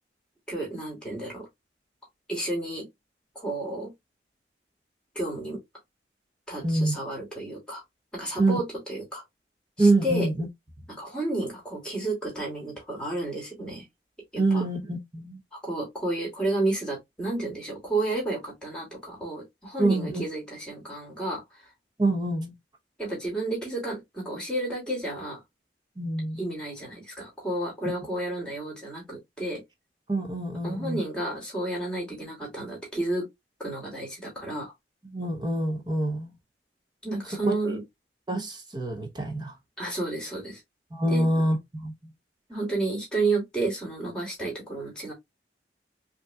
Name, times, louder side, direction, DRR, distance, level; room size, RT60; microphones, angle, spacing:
voice 1, 0.5-1.5 2.3-2.9 3.3-3.9 5.1-5.6 6.5-7.8 8.1-9.2 9.8-10.3 11.0-13.8 14.3-14.6 15.5-21.6 23.0-25.4 26.4-29.6 30.6-33.3 33.6-34.7 37.0-37.8 39.8-40.6 41.1-41.4 42.5-45.1, right 2 dB, 5° left, 2.3 m, -31 dB
voice 2, 6.6-7.0 8.4-8.6 9.8-10.5 14.4-15.4 19.8-20.2 22.0-22.5 26.0-26.5 30.1-31.0 35.1-36.3 37.5-37.6 38.3-39.5 40.9-42.1, right 2 dB, 25° right, 0.9 m, -26 dB
5.2 x 2.8 x 2.3 m
head